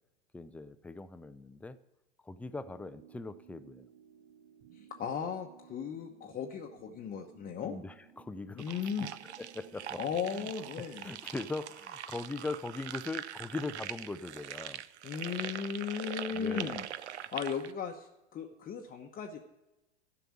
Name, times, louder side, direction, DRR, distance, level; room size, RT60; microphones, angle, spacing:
voice 1, 0.3-1.8 2.2-3.9 7.6-10.0 10.3-10.5 10.8-14.8 16.3-16.8, left 3 dB, 5° left, 12 dB, 0.4 m, -41 dB
sound 1, 2.4-11.2, right 10 dB, 55° right, 1.3 m, -59 dB
voice 2, 5.0-7.7 8.6-9.1 10.0-11.1 15.0-16.8 17.2-19.4, left 7 dB, 25° left, 2 dB, 0.9 m, -36 dB
sound 2, 8.6-17.7, right 11 dB, 75° right, 0.6 m, -43 dB
12.5 x 5.8 x 8.6 m, 0.97 s
hypercardioid pair, 90°, 34 cm